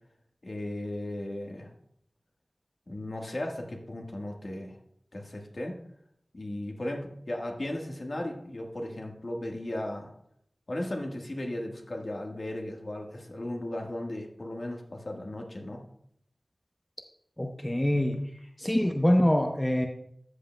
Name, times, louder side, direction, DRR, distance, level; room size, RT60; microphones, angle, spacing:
voice 1, 0.4-1.7 2.9-4.8 5.1-5.7 6.3-10.1 10.7-15.8, left 1 dB, 55° left, 1 dB, 1.4 m, -36 dB
voice 2, 17.4-18.2 18.6-19.9, left 1 dB, 15° left, 3 dB, 0.7 m, -24 dB
13.0 x 7.5 x 2.2 m, 0.72 s
wide cardioid pair, 55°, 0 cm